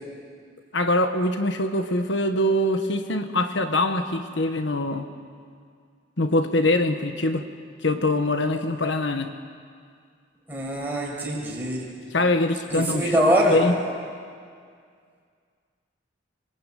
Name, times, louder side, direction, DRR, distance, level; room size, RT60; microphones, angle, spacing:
voice 1, 0.7-5.1 6.2-7.4 7.8-9.3 12.1-13.2 13.5-13.7, left 1 dB, 70° left, 7 dB, 1.4 m, -23 dB
voice 2, 10.5-11.8 12.7-13.6, equal, 10° right, -4 dB, 6.6 m, -23 dB
25.0 x 23.0 x 9.4 m, 2.2 s
head